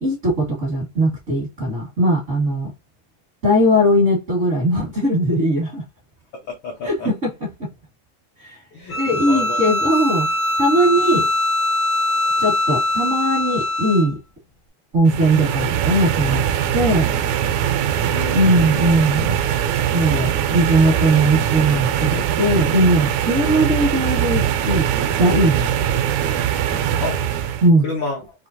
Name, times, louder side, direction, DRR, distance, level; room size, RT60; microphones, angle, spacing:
voice 1, 0.0-2.7 3.4-5.8 6.8-7.5 8.4-8.6 8.9-10.3 10.6-11.3 12.4-14.1 14.9-16.4 16.7-17.1 18.3-19.3 19.9-24.9 25.2-25.7 27.6-27.9, right 1 dB, 55° right, 0.8 m, -19 dB
voice 2, 6.5-7.1 8.7-9.7 17.8-18.9 27.0-27.2 27.8-28.2, left 3 dB, 85° left, 1.1 m, -30 dB
Bowed string instrument, 8.9-14.1, left 1 dB, 55° left, 1.0 m, -21 dB
sound 1, 15.1-27.7, right 10 dB, 80° right, 1.9 m, -21 dB
5.5 x 2.9 x 2.5 m
omnidirectional pair, 3.5 m